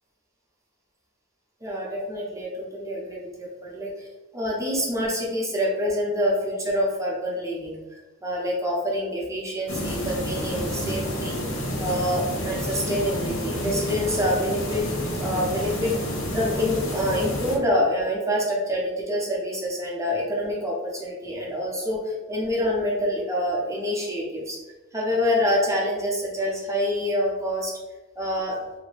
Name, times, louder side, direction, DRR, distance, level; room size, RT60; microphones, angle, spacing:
voice 1, 1.6-4.1 4.3-11.4 11.8-14.8 15.1-24.6 24.9-27.7 28.2-28.6, equal, 15° right, -3 dB, 0.8 m, -26 dB
sound 1, 9.7-17.6, equal, 75° left, 0.9 m, -29 dB
2.8 x 2.7 x 3.3 m, 1.2 s
head